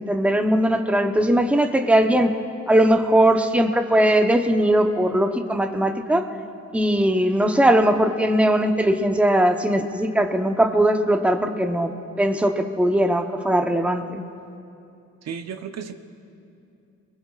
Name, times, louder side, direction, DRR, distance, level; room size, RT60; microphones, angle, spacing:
voice 1, 0.0-2.3 2.7-6.3 6.7-11.9 12.2-14.2, right 1 dB, 5° right, 5 dB, 0.9 m, -19 dB
voice 2, 15.2-16.0, right 7 dB, 60° right, 7 dB, 0.8 m, -33 dB
22.5 x 19.5 x 2.4 m, 2.7 s
cardioid pair, 90°, 30 cm